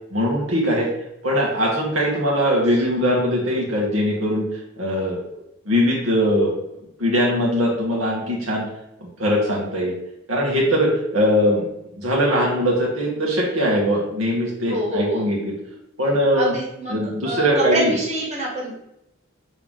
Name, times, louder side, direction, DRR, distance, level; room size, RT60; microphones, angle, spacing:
voice 1, 0.1-0.9 1.2-5.2 5.7-6.5 7.0-8.7 9.2-9.9 10.3-11.7 11.9-15.5 16.0-16.5 16.9-18.0, equal, 90° right, -4 dB, 2.2 m, -21 dB
voice 2, 14.7-15.3 16.3-18.7, right 1 dB, 35° right, -5 dB, 1.6 m, -26 dB
7.0 x 3.7 x 3.9 m, 0.83 s
head